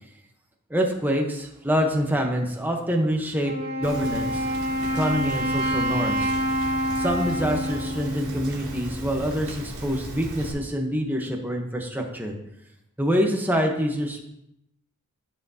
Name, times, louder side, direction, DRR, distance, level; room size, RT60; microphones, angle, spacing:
voice 1, 0.7-3.5 3.8-4.5 4.9-6.3 7.0-12.3 13.0-14.3, equal, 10° right, 2 dB, 1.0 m, -26 dB
Wind instrument woodwind instrument, 3.4-9.2, equal, 25° right, 1.7 m, -27 dB
Rain, 3.8-10.5, right 1 dB, 80° right, 2.8 m, -37 dB
13.5 x 5.8 x 2.8 m, 0.82 s
head